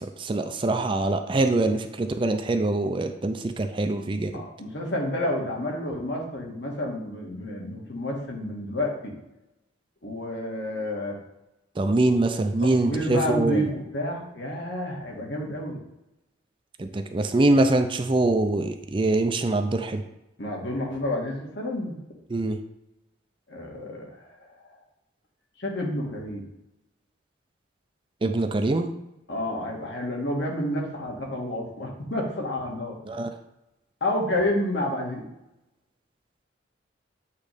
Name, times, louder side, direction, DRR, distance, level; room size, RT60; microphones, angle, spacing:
voice 1, 0.0-4.4 11.8-13.6 16.8-20.0 22.3-22.6 28.2-29.0 33.1-33.3, right 2 dB, 25° right, 7 dB, 0.4 m, -24 dB
voice 2, 4.3-9.1 10.0-11.2 12.6-15.8 20.4-22.0 23.5-24.8 25.6-26.4 29.3-33.0 34.0-35.2, left 1 dB, 65° left, -1 dB, 1.7 m, -30 dB
8.3 x 3.1 x 5.1 m, 0.90 s
head